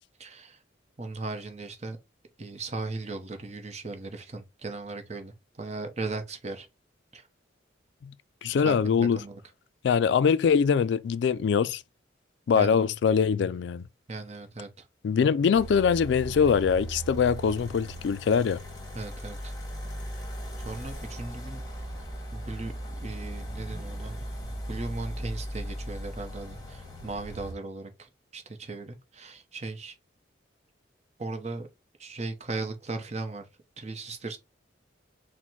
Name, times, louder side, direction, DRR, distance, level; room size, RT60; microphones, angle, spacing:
voice 1, 0.2-0.6 1.0-2.0 2.4-6.7 7.1-7.3 8.6-9.4 12.5-12.8 14.1-14.9 18.9-19.5 20.1-20.3 20.6-21.6 22.3-22.7 23.0-24.2 24.7-29.9 31.2-31.7 32.0-33.5 33.8-34.4, right 3 dB, 35° right, 0.8 m, -37 dB
voice 2, 8.4-9.2 9.8-11.8 12.5-13.8 15.0-18.6, left 6 dB, 70° left, 0.3 m, -23 dB
sound 1, 15.5-27.5, right 1 dB, 20° left, 1.2 m, -38 dB
4.1 x 2.1 x 4.5 m
head